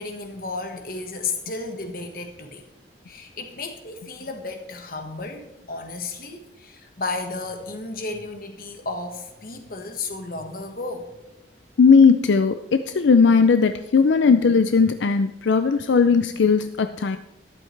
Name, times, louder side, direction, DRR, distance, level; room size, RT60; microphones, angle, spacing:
voice 1, 0.0-2.6 3.1-11.1, left 3 dB, 50° left, 5 dB, 1.5 m, -33 dB
voice 2, 11.8-17.2, left 5 dB, 80° left, 10 dB, 0.4 m, -17 dB
13.0 x 11.5 x 3.3 m, 0.93 s
head